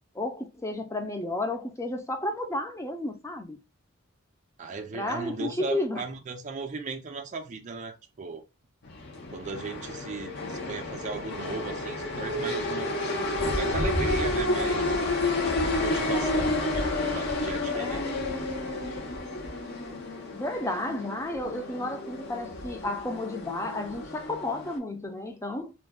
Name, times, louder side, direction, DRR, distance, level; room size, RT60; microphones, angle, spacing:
voice 1, 0.1-3.6 4.9-6.0 17.7-18.1 20.3-25.7, left 1 dB, 15° left, 0.5 m, -32 dB
voice 2, 4.6-8.4 9.3-15.0 15.8-18.1, right 3 dB, 35° right, 0.4 m, -37 dB
sound 1, 8.8-24.8, left 2 dB, 55° left, 0.7 m, -30 dB
2.5 x 2.2 x 3.4 m
head